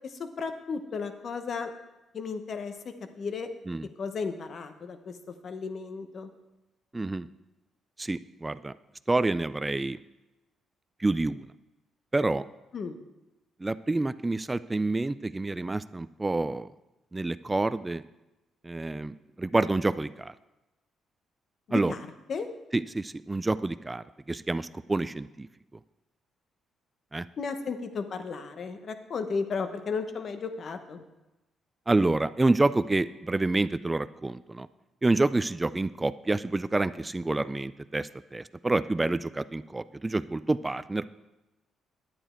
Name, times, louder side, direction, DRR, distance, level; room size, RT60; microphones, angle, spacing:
voice 1, 0.2-1.7 2.1-3.5 4.0-5.1 5.4-6.3 12.7-13.0 21.7-22.5 27.4-31.0, left 5 dB, 50° left, 8 dB, 1.0 m, -34 dB
voice 2, 6.9-7.3 8.0-8.7 9.1-10.0 11.0-11.4 12.1-12.4 13.6-16.7 17.1-18.0 18.6-20.3 21.7-21.9 22.7-25.5 27.1-27.3 31.9-34.7 35.0-41.1, right 2 dB, 15° right, 15 dB, 0.3 m, -28 dB
10.0 x 9.0 x 4.4 m, 1.0 s
cardioid pair, 90°, 0 cm